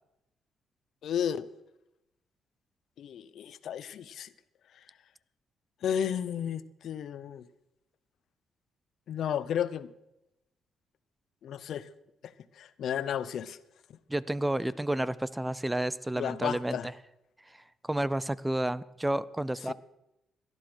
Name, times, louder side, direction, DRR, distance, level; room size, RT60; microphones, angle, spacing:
voice 1, 1.0-1.5 3.0-4.3 5.8-7.5 9.1-9.9 11.4-11.9 12.2-13.6 16.2-16.9 19.7-19.8, left 9 dB, 70° left, 0.8 m, -33 dB
voice 2, 14.1-16.9 17.8-19.7, right 1 dB, 10° right, 0.6 m, -30 dB
18.0 x 12.0 x 6.2 m
cardioid pair, 90°, 0 cm